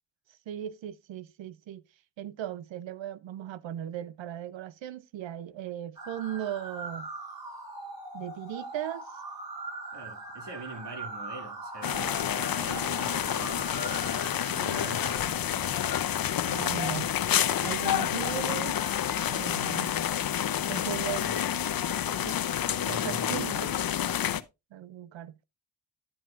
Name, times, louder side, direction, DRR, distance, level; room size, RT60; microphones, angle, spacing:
voice 1, 0.5-1.8 2.2-7.1 8.1-9.1 16.5-17.1 17.6-18.8 19.2-19.9 20.7-21.3 22.2-22.3 22.9-23.6 24.7-25.4, right 11 dB, 85° right, 0.7 m, -37 dB
sound 1, 6.0-15.2, right 2 dB, 55° right, 6.5 m, -41 dB
voice 2, 9.9-16.0 16.6-16.8 21.2-21.4 22.7-23.7, right 3 dB, 70° right, 2.3 m, -44 dB
sound 2, 11.8-24.4, left 10 dB, 50° left, 0.7 m, -29 dB
11.0 x 7.9 x 2.4 m
cardioid pair, 60°, 44 cm